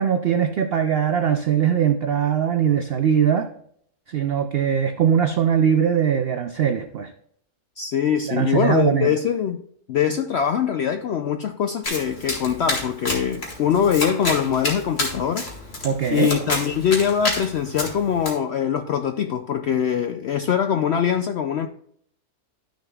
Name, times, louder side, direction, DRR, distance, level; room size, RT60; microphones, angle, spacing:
voice 1, 0.0-3.5 4.1-7.1 8.3-9.1 15.8-16.4, right 8 dB, 75° right, 0.5 m, -21 dB
voice 2, 7.8-9.6 9.9-15.5 16.1-21.7, left 8 dB, 75° left, 0.6 m, -23 dB
Domestic sounds home sounds, 11.8-18.3, left 1 dB, 40° left, 2.1 m, -29 dB
12.5 x 6.5 x 2.3 m
omnidirectional pair, 1.6 m